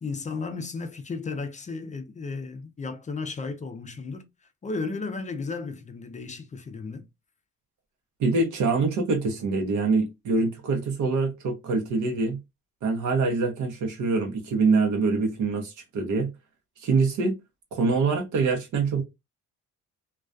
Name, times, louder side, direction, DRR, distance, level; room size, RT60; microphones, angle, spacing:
voice 1, 0.0-4.2 4.6-7.1, left 4 dB, 25° left, 0.4 m, -34 dB
voice 2, 8.2-12.4 12.8-16.3 16.8-17.4 17.7-19.0, right 4 dB, 75° right, 0.7 m, -24 dB
2.3 x 2.2 x 2.4 m
cardioid pair, 90°, 30 cm